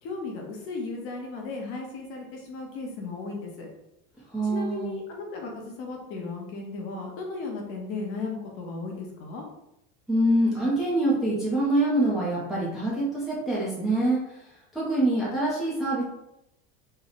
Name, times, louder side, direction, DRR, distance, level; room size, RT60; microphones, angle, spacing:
voice 1, 0.0-3.7 4.4-9.4, left 3 dB, 45° left, 1 dB, 0.8 m, -35 dB
voice 2, 4.3-4.9 10.1-14.4 14.7-16.0, right 1 dB, ahead, -7 dB, 0.5 m, -25 dB
3.2 x 2.0 x 3.9 m, 0.83 s
cardioid pair, 165°, 31 cm